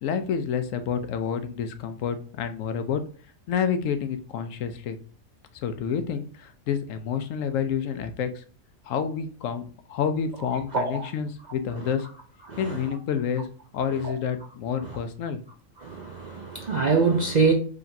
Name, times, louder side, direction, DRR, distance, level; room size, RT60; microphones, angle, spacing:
voice 1, 0.0-3.0 3.5-5.0 5.6-8.4 8.9-12.1 12.6-13.5 13.7-15.4, left 7 dB, 75° left, 0.9 m, -29 dB
voice 2, 10.7-11.1 12.5-12.8 14.8-15.0 15.8-17.5, right 4 dB, 55° right, 0.4 m, -24 dB
5.0 x 3.0 x 2.6 m
omnidirectional pair, 1.4 m